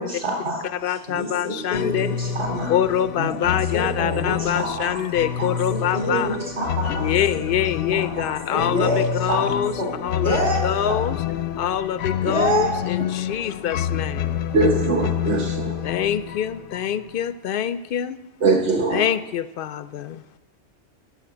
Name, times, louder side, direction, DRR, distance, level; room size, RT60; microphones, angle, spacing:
voice 1, 0.0-2.7 3.2-5.0 5.4-7.4 7.9-9.9 10.2-11.0 12.3-12.7, equal, 50° right, -1 dB, 3.8 m, -27 dB
voice 2, 0.8-2.1 2.7-6.3 6.9-9.7 10.0-10.4 10.6-11.2 11.6-14.4 15.8-18.2 18.9-20.2, left 10 dB, 60° left, 14 dB, 0.6 m, -25 dB
sound 1, 1.7-17.2, left 8 dB, 80° left, 0.9 m, -28 dB
voice 3, 14.5-15.8 18.4-19.0, right 3 dB, 70° right, 0 dB, 1.2 m, -21 dB
11.5 x 6.6 x 7.7 m, 1.1 s
omnidirectional pair, 1.2 m